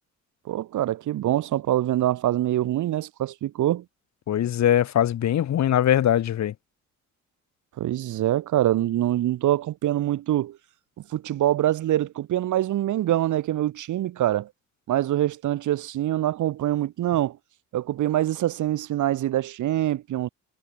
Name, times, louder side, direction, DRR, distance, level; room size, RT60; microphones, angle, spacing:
voice 1, 0.5-3.8 7.8-10.6 11.1-14.5 14.9-17.4 17.7-20.3, right 13 dB, 75° right, 2.9 m, -24 dB
voice 2, 4.3-6.5, left 11 dB, 65° left, 2.3 m, -21 dB
cardioid pair, 90°, 30 cm